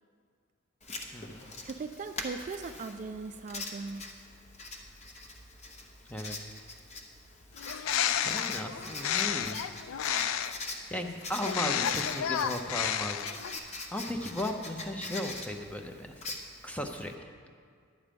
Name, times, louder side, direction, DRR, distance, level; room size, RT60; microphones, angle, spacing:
Writing, 0.8-17.1, left 2 dB, 30° left, 0.9 m, -43 dB
voice 1, 1.1-1.4 6.1-6.4 8.2-9.6 10.9-13.2 13.6-16.3 16.6-17.3, left 1 dB, 5° left, 4 dB, 0.7 m, -36 dB
voice 2, 1.6-4.1, right 4 dB, 35° right, 7 dB, 0.3 m, -39 dB
Bird, 7.6-10.7 11.4-13.6, left 9 dB, 70° left, 0.4 m, -31 dB
11.0 x 8.8 x 5.2 m, 2.1 s
head